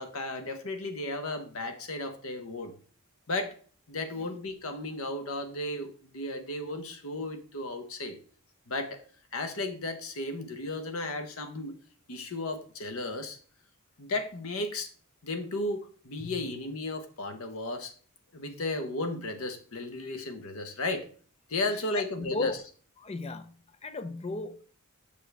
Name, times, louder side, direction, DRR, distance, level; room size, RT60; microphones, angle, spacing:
voice 1, 0.0-2.7 3.3-3.5 3.9-8.2 8.7-9.0 9.3-11.7 12.1-13.4 14.0-14.9 15.2-17.9 18.3-21.1 21.5-22.6, left 2 dB, 75° left, 1.0 m, -34 dB
voice 2, 22.2-22.6 23.0-23.5 23.8-24.6, left 2 dB, 30° left, 0.4 m, -34 dB
6.9 x 4.9 x 3.3 m
head